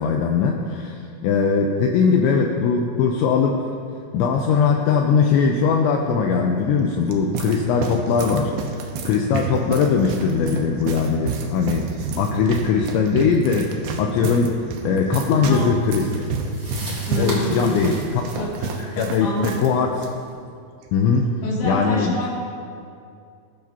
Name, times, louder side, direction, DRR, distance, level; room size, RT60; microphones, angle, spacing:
voice 1, 0.0-3.6 4.1-8.5 9.1-13.7 14.0-14.6 14.8-16.2 16.9-19.9 20.9-21.2 21.6-22.1, left 5 dB, 80° left, 1 dB, 2.7 m, -20 dB
sound 1, 6.8-19.7 19.9-20.1 20.8-21.1, right 4 dB, 85° right, 2.2 m, -30 dB
voice 2, 15.4-15.7 17.1-17.9 18.4-18.5 18.9-19.6 21.4-22.3, equal, 60° left, -6 dB, 4.7 m, -27 dB
sound 2, 15.4-20.3, right 1 dB, 35° right, 1.4 m, -38 dB
20.0 x 12.5 x 2.8 m, 2.4 s
omnidirectional pair, 5.8 m